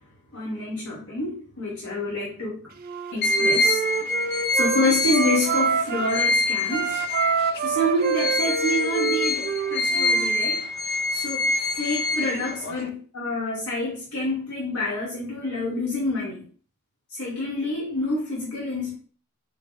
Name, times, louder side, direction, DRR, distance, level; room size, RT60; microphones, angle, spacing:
voice 1, 0.3-2.6 3.1-3.8 4.5-7.0 7.6-10.6 11.1-16.4 17.1-19.0, left 1 dB, 85° left, -6 dB, 1.4 m, -27 dB
Wind instrument woodwind instrument, 2.8-6.2 6.6-10.3, right 7 dB, 45° right, 0.3 m, -27 dB
sound 1, 3.2-7.6 8.0-12.9, left 2 dB, 50° left, 0.4 m, -25 dB
4.6 x 2.1 x 3.9 m, 0.43 s
head